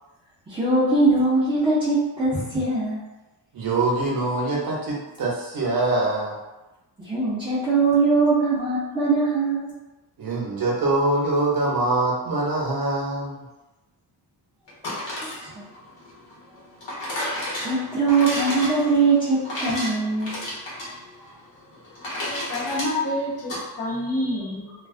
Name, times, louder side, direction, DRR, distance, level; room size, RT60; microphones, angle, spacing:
voice 1, 0.5-3.0 7.0-9.8 15.0-15.6 17.3-20.4, right 3 dB, 15° right, -10 dB, 0.3 m, -22 dB
voice 2, 3.5-6.3 10.2-13.4, right 2 dB, 55° right, -4 dB, 0.7 m, -24 dB
sound 1, 14.7-23.6, left 1 dB, 80° left, 1.0 m, -33 dB
voice 3, 22.2-23.5 23.8-24.7, left 1 dB, 35° left, -6 dB, 0.6 m, -27 dB
2.3 x 2.3 x 2.4 m, 1.1 s
wide cardioid pair, 150°, 43 cm